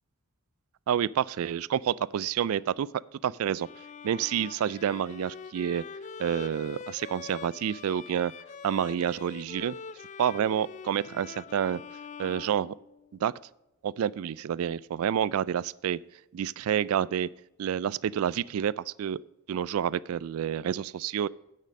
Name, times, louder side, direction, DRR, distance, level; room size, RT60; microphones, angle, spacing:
voice 1, 0.9-2.9 3.2-3.7 4.0-5.8 6.2-8.3 8.6-9.8 10.2-11.8 12.2-12.8 13.2-13.3 13.8-16.0 16.3-17.3 17.6-19.2 19.5-21.3, right 9 dB, 70° right, 21 dB, 0.3 m, -28 dB
Bowed string instrument, 3.5-13.3, left 6 dB, 35° left, 0.3 m, -44 dB
9.8 x 6.6 x 5.2 m, 0.89 s
head